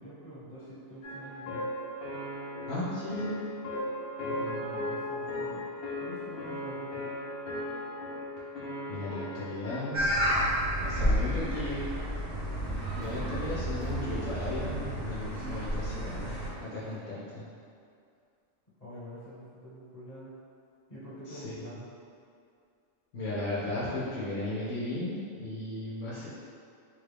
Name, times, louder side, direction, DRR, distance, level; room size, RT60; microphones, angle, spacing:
voice 1, 0.0-1.7 4.2-5.7 6.0-7.1 18.8-20.4 20.9-22.0, left 1 dB, 35° left, -12 dB, 1.3 m, -46 dB
sound 1, 1.0-10.5, left 1 dB, 60° left, 0.8 m, -37 dB
voice 2, 2.7-3.4 8.9-10.1 10.8-11.9 13.0-17.5 21.3-21.6 23.1-26.3, left 2 dB, 85° left, -9 dB, 1.1 m, -35 dB
sound 2, 9.9-16.5, equal, 55° right, 1.0 m, -31 dB
sound 3, 12.5-14.8 15.2-17.0, right 3 dB, 75° right, 0.9 m, -44 dB
3.5 x 2.3 x 3.4 m, 2.4 s
omnidirectional pair, 1.2 m